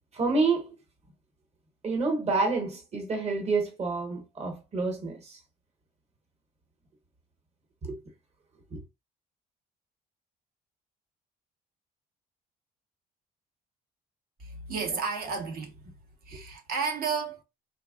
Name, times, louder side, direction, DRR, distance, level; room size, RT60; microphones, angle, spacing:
voice 1, 0.1-0.7 1.8-5.4 7.8-8.0 8.7-8.8, right 3 dB, 40° right, 1.1 m, -28 dB
voice 2, 14.4-15.8 16.2-17.4, right 5 dB, 60° right, 0.8 m, -32 dB
3.4 x 2.2 x 2.3 m
cardioid pair, 110°, 17 cm